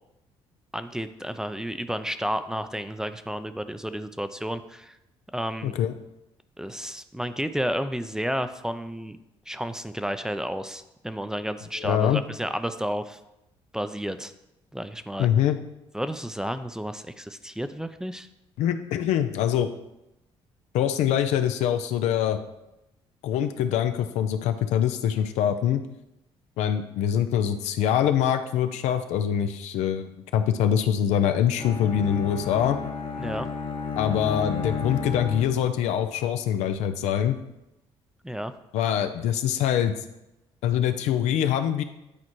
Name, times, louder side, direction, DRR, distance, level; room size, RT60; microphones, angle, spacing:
voice 1, 0.7-5.0 5.3-5.7 6.6-9.2 9.5-13.2 13.7-14.3 14.7-15.3 15.9-18.3 33.2-33.5 38.2-38.5, equal, 5° right, 10 dB, 0.5 m, -31 dB
voice 2, 5.6-5.9 11.8-12.2 15.2-15.6 18.6-19.7 20.7-22.4 23.2-25.8 26.6-32.8 34.0-37.4 38.7-39.9 40.6-41.8, left 9 dB, 80° left, 9 dB, 0.5 m, -24 dB
Bowed string instrument, 31.6-36.0, left 4 dB, 50° left, 1.1 m, -33 dB
9.9 x 4.2 x 3.1 m, 0.90 s
supercardioid pair, 70°, 12 cm